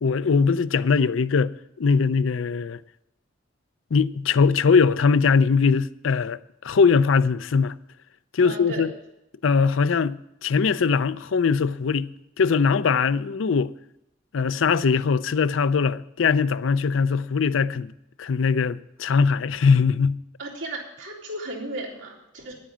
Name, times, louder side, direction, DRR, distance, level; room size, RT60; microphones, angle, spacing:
voice 1, 0.0-2.8 3.9-7.8 8.3-8.9 9.4-12.1 12.4-13.7 14.3-17.9 18.2-20.2, left 5 dB, 90° left, 0.5 m, -21 dB
voice 2, 8.4-8.8 20.4-22.5, right 1 dB, 75° right, 3.7 m, -35 dB
10.5 x 8.8 x 7.4 m
head